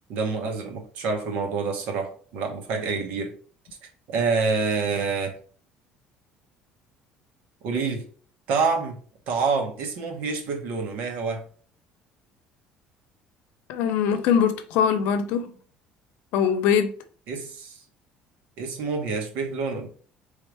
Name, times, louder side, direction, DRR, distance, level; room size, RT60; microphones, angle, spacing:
voice 1, 0.1-3.3 4.1-5.4 7.6-8.1 8.5-9.0 9.3-11.4 17.3-17.8 18.6-19.9, right 4 dB, 65° right, 1.3 m, -27 dB
voice 2, 13.7-15.5 16.3-16.9, left 7 dB, 75° left, 0.7 m, -22 dB
4.5 x 3.5 x 3.4 m
cardioid pair, 165°, 3 cm